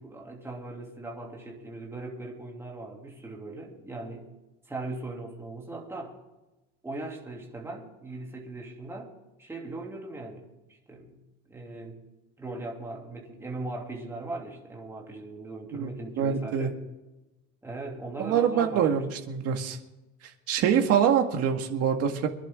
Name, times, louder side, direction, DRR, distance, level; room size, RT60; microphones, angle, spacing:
voice 1, 0.0-4.3 4.7-6.2 6.8-9.1 9.4-12.0 12.4-16.7 17.6-19.0, right 2 dB, 10° right, -2 dB, 2.9 m, -39 dB
voice 2, 16.2-16.7 18.2-19.8 20.5-22.3, right 8 dB, 50° right, 4 dB, 1.9 m, -25 dB
25.0 x 11.0 x 3.7 m, 1.1 s
cardioid pair, 165°, 32 cm